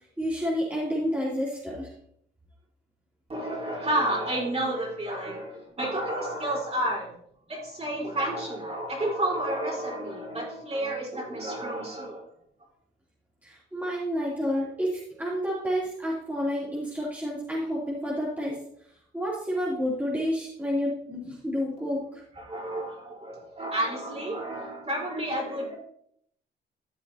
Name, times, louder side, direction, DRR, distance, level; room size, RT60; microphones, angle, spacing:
voice 1, 0.2-1.9 13.4-18.6 19.1-22.2, equal, 10° right, -6 dB, 3.1 m, -29 dB
voice 2, 3.3-7.1 7.5-12.3 22.0-25.8, right 1 dB, 30° right, -3 dB, 4.4 m, -31 dB
13.5 x 7.5 x 2.9 m, 0.67 s
cardioid pair, 90°, 20 cm